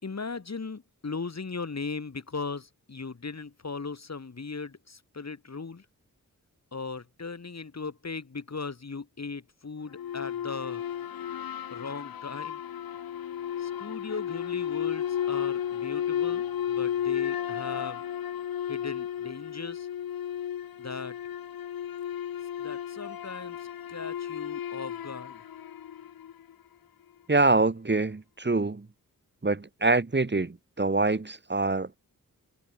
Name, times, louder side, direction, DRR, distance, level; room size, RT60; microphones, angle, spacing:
voice 1, 0.0-5.8 6.7-10.8 11.7-12.6 13.6-18.0 18.7-19.9 20.8-21.1 22.6-25.4, left 4 dB, 50° left, 3.5 m, -38 dB
sound 1, 9.9-26.5, left 10 dB, 85° left, 0.7 m, -33 dB
voice 2, 27.3-28.9 29.4-32.0, right 3 dB, 30° right, 2.1 m, -25 dB
wide cardioid pair, 85°, 35 cm